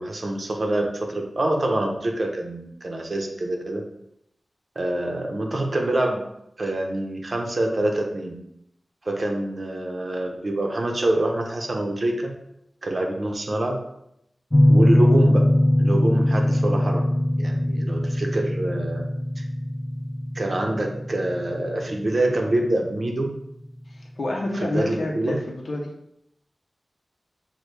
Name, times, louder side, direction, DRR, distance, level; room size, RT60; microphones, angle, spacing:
voice 1, 0.0-3.8 4.8-6.2 6.6-8.4 9.0-12.3 12.8-13.8 14.7-17.1 17.4-19.0 20.3-23.3 24.5-25.4, right 1 dB, 45° right, 1 dB, 0.8 m, -26 dB
sound 1, 14.5-23.2, left 1 dB, 20° left, 0.4 m, -21 dB
voice 2, 23.9-25.9, left 1 dB, 65° left, -1 dB, 0.6 m, -28 dB
6.2 x 2.2 x 3.3 m, 0.78 s
wide cardioid pair, 100°, 0 cm